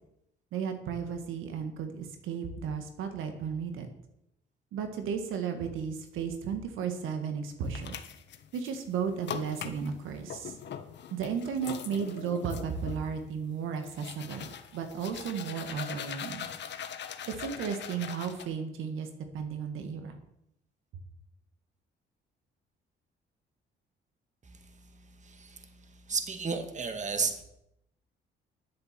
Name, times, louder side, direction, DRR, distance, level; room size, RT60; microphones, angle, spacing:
voice 1, 0.5-3.9 4.7-8.0 8.5-10.6 11.1-16.5 17.2-19.1 19.3-20.1, right 6 dB, 90° right, 7 dB, 1.6 m, -34 dB
sound 1, 7.6-8.8 9.2-18.4, left 8 dB, 60° left, 1.3 m, -42 dB
voice 2, 25.2-25.7 26.1-27.4, right 5 dB, 35° right, 7 dB, 1.8 m, -32 dB
10.5 x 8.2 x 7.4 m, 0.80 s
cardioid pair, 90°, 20 cm